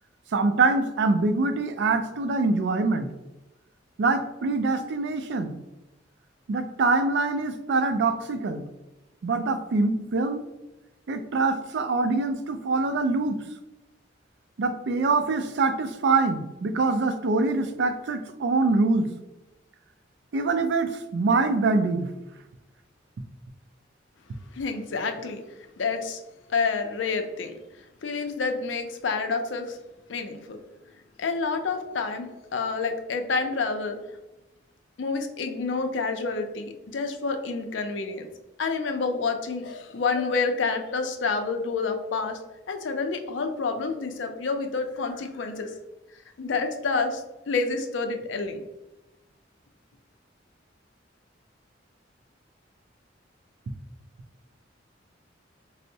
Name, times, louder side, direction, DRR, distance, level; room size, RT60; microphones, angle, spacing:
voice 1, 0.3-3.1 4.0-5.5 6.5-8.6 9.2-10.4 11.1-13.4 14.6-19.1 20.3-22.1, right 3 dB, 65° right, 8 dB, 0.4 m, -24 dB
voice 2, 24.5-25.4 25.8-26.2 26.5-27.5 28.0-29.8 30.1-30.6 31.2-34.0 35.0-38.3 38.6-42.4 42.7-45.7 46.4-48.6, left 4 dB, 80° left, 6 dB, 0.4 m, -28 dB
4.3 x 2.0 x 2.7 m, 1.0 s
head